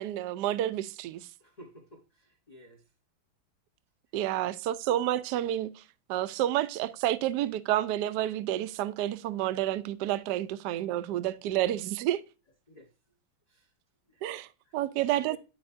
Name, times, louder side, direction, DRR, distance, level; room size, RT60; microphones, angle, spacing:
voice 1, 0.0-1.3 4.1-5.8 6.1-12.2 14.2-15.4, right 13 dB, 75° right, 1.0 m, -30 dB
voice 2, 1.4-2.9 12.7-12.9 13.5-13.7 14.1-14.2 14.6-14.8 15.3-15.4, equal, 35° left, 0.6 m, -53 dB
11.0 x 4.9 x 2.5 m
omnidirectional pair, 2.2 m